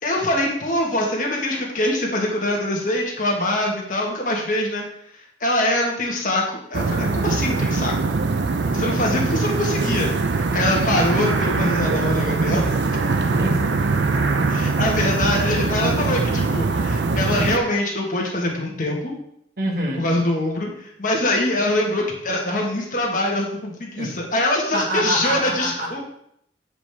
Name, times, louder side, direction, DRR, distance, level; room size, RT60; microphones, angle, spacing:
voice 1, 0.0-4.8 5.4-6.4 6.7-8.1 8.7-12.7 14.5-19.1 20.0-26.0, left 1 dB, 45° left, -1 dB, 1.4 m, -23 dB
sound 1, 6.7-17.6, right 3 dB, 75° right, 0.5 m, -22 dB
voice 2, 13.4-13.7 19.6-20.1 23.9-24.1 24.7-26.0, right 1 dB, 55° right, 0 dB, 1.5 m, -26 dB
8.3 x 5.0 x 3.4 m, 0.72 s
head